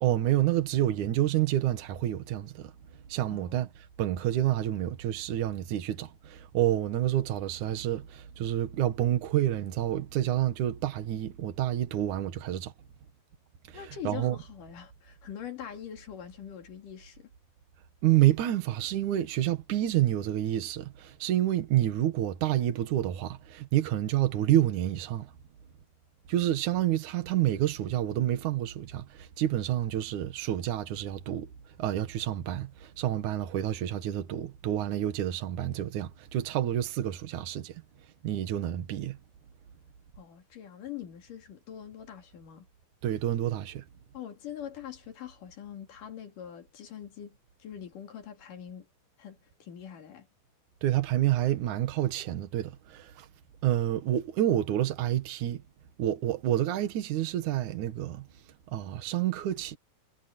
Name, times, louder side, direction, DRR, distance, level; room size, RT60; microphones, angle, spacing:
voice 1, 0.0-2.7 3.1-3.7 4.0-12.7 13.7-14.4 18.0-25.3 26.3-31.5 31.8-37.8 38.2-39.2 43.0-43.9 50.8-53.3 53.6-55.6 56.0-58.3 58.7-59.8, right 12 dB, 90° right, 1.7 m, -28 dB
voice 2, 3.3-3.6 13.7-17.3 40.2-42.7 44.1-48.9 49.2-50.3, left 9 dB, 50° left, 3.1 m, -43 dB
omnidirectional pair, 6.0 m